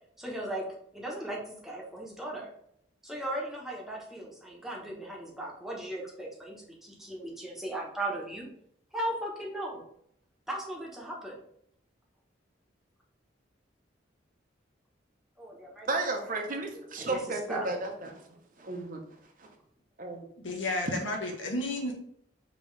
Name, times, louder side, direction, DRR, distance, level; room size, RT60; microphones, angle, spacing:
voice 1, 0.2-0.7 0.9-2.5 3.0-8.5 8.9-9.8 10.5-11.4 15.4-15.9 16.2-16.3 16.6-17.7, right 1 dB, ahead, -3 dB, 1.1 m, -37 dB
voice 2, 15.9-19.0 19.4-19.5 20.0-20.3, right 2 dB, 45° right, 3 dB, 0.8 m, -34 dB
voice 3, 20.4-22.0, left 1 dB, 80° left, 2 dB, 1.1 m, -32 dB
5.3 x 3.0 x 3.2 m, 0.70 s
head